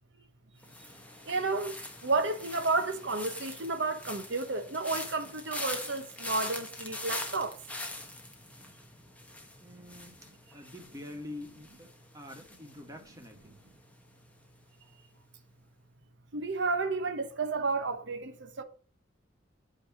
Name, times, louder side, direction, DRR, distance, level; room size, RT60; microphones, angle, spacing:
sound 1, 0.6-13.7 13.9-14.4, left 2 dB, 10° left, 1.2 m, -43 dB
voice 1, 1.3-1.8 2.0-7.5 16.3-18.6, right 3 dB, 65° right, 1.0 m, -31 dB
voice 2, 9.6-10.2 10.5-11.9 12.1-13.6, left 1 dB, 20° right, 1.6 m, -46 dB
8.6 x 3.5 x 6.2 m
head